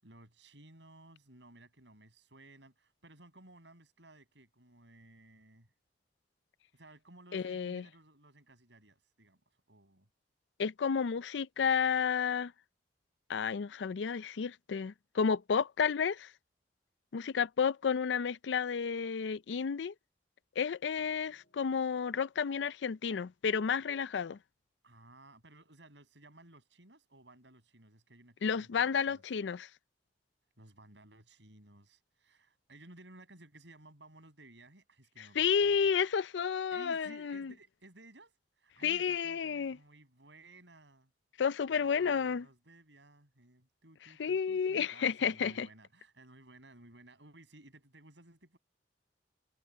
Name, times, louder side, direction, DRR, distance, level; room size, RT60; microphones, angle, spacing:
voice 1, 0.0-5.7 6.7-9.4 9.7-10.1 24.8-29.2 30.6-35.8 36.7-41.1 41.7-48.6, right 2 dB, 85° right, 7.2 m, -57 dB
voice 2, 7.3-7.8 10.6-12.5 13.3-16.3 17.1-19.9 20.6-24.4 28.4-29.7 35.2-37.5 38.8-39.8 41.4-42.5 44.2-45.7, left 6 dB, 85° left, 0.4 m, -31 dB
sound 1, 21.0-23.5, left 2 dB, 55° left, 2.6 m, -68 dB
head